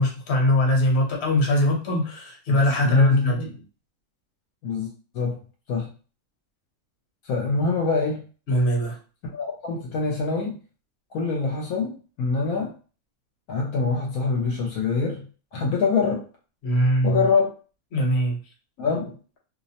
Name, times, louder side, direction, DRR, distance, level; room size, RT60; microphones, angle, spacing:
voice 1, 0.0-3.4 8.5-9.0 16.6-17.2 17.9-18.4, left 1 dB, 50° left, -1 dB, 1.0 m, -21 dB
voice 2, 2.5-3.5 4.6-5.4 5.7-5.9 7.2-8.2 9.3-10.6 11.1-12.7 13.5-15.2 15.5-16.2 17.0-17.5 18.8-19.1, left 4 dB, 75° left, 0 dB, 1.0 m, -25 dB
2.7 x 2.0 x 2.7 m, 0.36 s
omnidirectional pair, 1.6 m